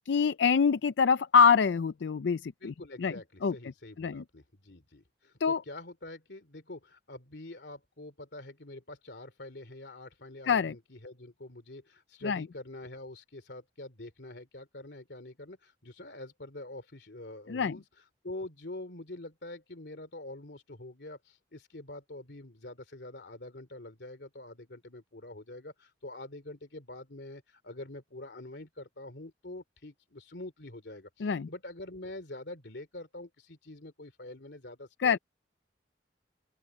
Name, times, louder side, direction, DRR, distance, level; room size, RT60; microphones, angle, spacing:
voice 1, 0.1-2.7 3.0-3.1 3.4-3.5 4.0-4.2 5.4-5.6 10.5-10.7 12.2-12.4 17.5-17.7 31.2-31.5 35.0-35.2, left 6 dB, 85° left, 0.4 m, -25 dB
voice 2, 2.6-17.8 18.2-35.2, left 2 dB, 70° left, 3.0 m, -45 dB
open air
head